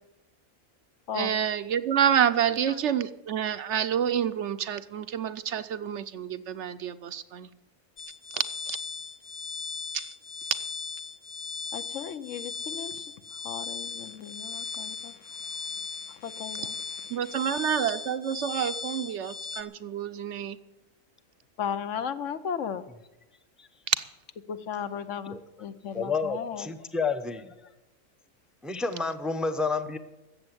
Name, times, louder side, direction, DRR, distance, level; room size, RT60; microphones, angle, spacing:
voice 1, 1.1-7.5 8.3-8.8 9.9-10.1 17.1-20.6 23.9-24.0, right 9 dB, 65° right, 12 dB, 0.9 m, -28 dB
sound 1, 8.0-19.6, left 5 dB, 40° left, 1.1 m, -38 dB
voice 2, 11.7-13.0 13.4-15.1 16.1-17.1 17.5-17.6 21.6-22.8 24.5-26.7, left 8 dB, 70° left, 11 dB, 1.1 m, -36 dB
voice 3, 25.9-27.5 28.6-30.0, left 4 dB, ahead, 10 dB, 0.5 m, -30 dB
14.0 x 8.0 x 9.7 m, 1.0 s
omnidirectional pair, 1.4 m